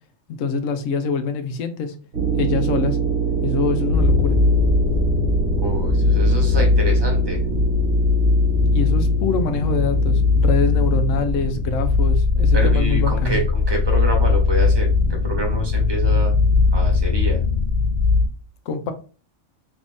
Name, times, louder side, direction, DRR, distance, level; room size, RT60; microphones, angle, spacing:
voice 1, 0.3-1.9 2.4-3.0 3.4-4.4 8.7-13.4 18.7-18.9, left 4 dB, 80° left, 1.0 m, -24 dB
sound 1, 2.1-11.6, right 6 dB, 60° right, 1.2 m, -25 dB
sound 2, 3.9-18.3, left 4 dB, 55° left, 0.6 m, -19 dB
voice 2, 5.6-7.4 12.5-16.3 16.7-17.4, right 1 dB, 25° right, 0.8 m, -27 dB
3.1 x 2.5 x 3.4 m
omnidirectional pair, 1.3 m